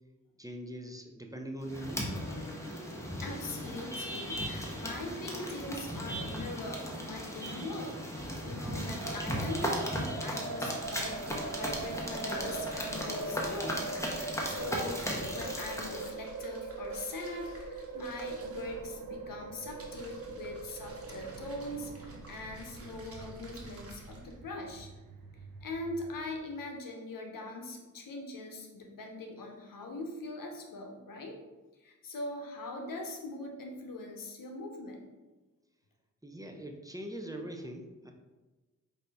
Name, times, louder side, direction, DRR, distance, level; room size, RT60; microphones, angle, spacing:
voice 1, 0.4-2.1 36.2-38.1, right 1 dB, 10° right, 2 dB, 0.5 m, -42 dB
sound 1, 1.6-16.1, equal, 10° left, 1.0 m, -37 dB
voice 2, 3.2-11.3 11.5-13.8 14.1-15.0 15.3-24.9 25.6-31.4 31.8-35.0, left 2 dB, 75° left, 2 dB, 0.8 m, -41 dB
sound 2, 9.0-26.4, right 3 dB, 85° right, 0.6 m, -42 dB
sound 3, 10.8-24.4, right 1 dB, 45° right, 1.2 m, -52 dB
5.0 x 2.7 x 3.4 m, 1.2 s
cardioid pair, 50°, 33 cm